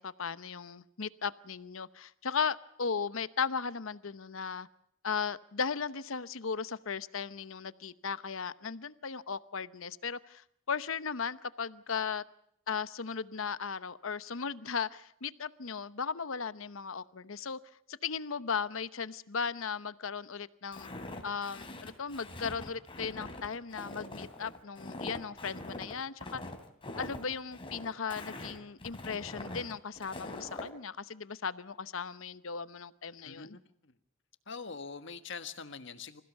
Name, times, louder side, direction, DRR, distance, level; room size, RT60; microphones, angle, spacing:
voice 1, 0.0-4.7 5.0-12.2 12.7-17.6 17.9-20.9 21.2-26.4 27.0-33.6, left 6 dB, 85° left, 15 dB, 0.9 m, -36 dB
Walk footsteps, 20.7-30.7, left 2 dB, 25° left, 3.0 m, -43 dB
voice 2, 33.2-33.9 34.5-36.2, left 5 dB, 65° left, 10 dB, 1.5 m, -44 dB
26.5 x 16.0 x 8.1 m, 0.70 s
head